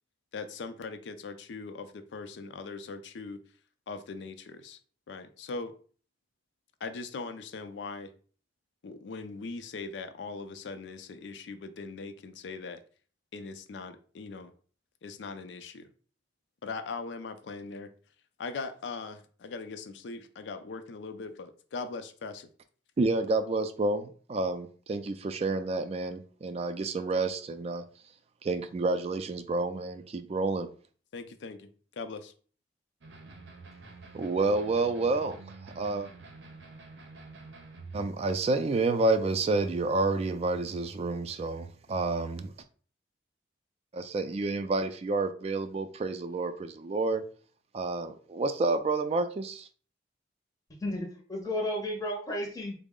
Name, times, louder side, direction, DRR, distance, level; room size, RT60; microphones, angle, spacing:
voice 1, 0.3-3.4 3.9-4.8 5.1-5.7 6.8-8.1 8.8-12.8 13.3-14.5 15.0-15.9 16.6-17.9 18.4-22.5 31.1-32.3, left 4 dB, 80° left, 0.4 m, -40 dB
voice 2, 23.0-27.8 28.4-30.7 34.1-36.1 37.9-42.5 43.9-47.2 47.7-49.7, right 3 dB, 35° right, 0.3 m, -29 dB
sound 1, 33.0-38.1, right 3 dB, 90° right, 0.7 m, -48 dB
voice 3, 50.8-52.8, left 1 dB, 20° left, 0.6 m, -33 dB
3.9 x 2.0 x 3.5 m
head